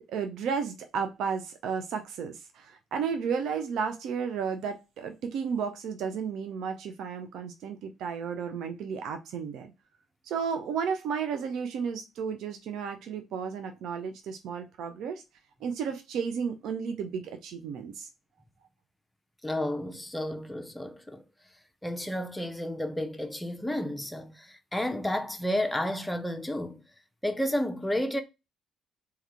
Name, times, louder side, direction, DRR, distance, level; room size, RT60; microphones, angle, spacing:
voice 1, 0.1-9.7 10.3-15.2 15.6-18.1, right 6 dB, 60° right, 0.4 m, -33 dB
voice 2, 19.4-21.2 21.8-26.8 27.2-28.2, left 1 dB, 10° left, 0.6 m, -31 dB
3.5 x 2.3 x 4.2 m
figure-of-eight pair, 45°, 0 cm